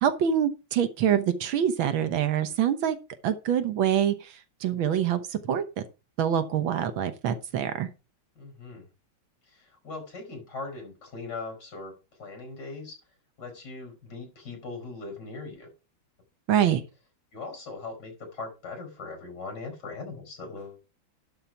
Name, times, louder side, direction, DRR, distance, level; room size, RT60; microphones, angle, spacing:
voice 1, 0.0-3.0 3.2-4.3 4.6-5.8 6.2-7.9 16.5-16.8, right 9 dB, 80° right, 1.9 m, -25 dB
voice 2, 8.4-8.9 9.5-13.0 13.4-15.7 16.6-16.8 17.3-20.8, left 3 dB, 55° left, 5.5 m, -40 dB
11.5 x 4.5 x 5.9 m
omnidirectional pair, 2.2 m